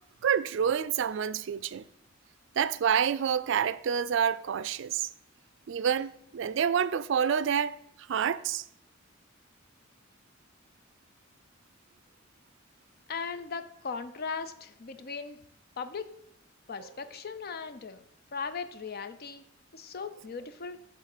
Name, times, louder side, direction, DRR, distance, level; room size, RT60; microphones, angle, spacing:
voice 1, 0.2-1.8 2.6-5.1 5.7-7.8 8.1-8.6, right 8 dB, 65° right, 0.4 m, -28 dB
voice 2, 13.1-15.4 15.8-16.1 16.7-18.0 18.3-19.4 19.7-20.9, left 5 dB, 50° left, 0.6 m, -38 dB
8.2 x 3.7 x 6.6 m
head